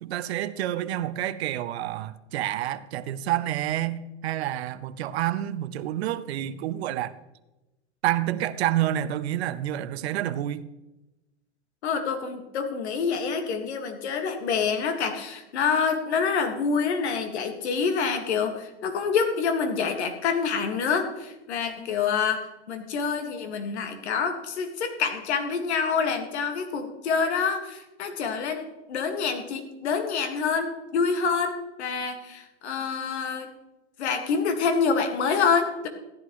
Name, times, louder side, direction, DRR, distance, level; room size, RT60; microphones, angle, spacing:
voice 1, 0.0-7.2 8.0-10.7, right 12 dB, 65° right, 0.8 m, -28 dB
voice 2, 11.8-33.5 34.0-35.9, left 5 dB, 70° left, 1.9 m, -27 dB
14.5 x 10.5 x 3.1 m
hypercardioid pair, 125°, 35 cm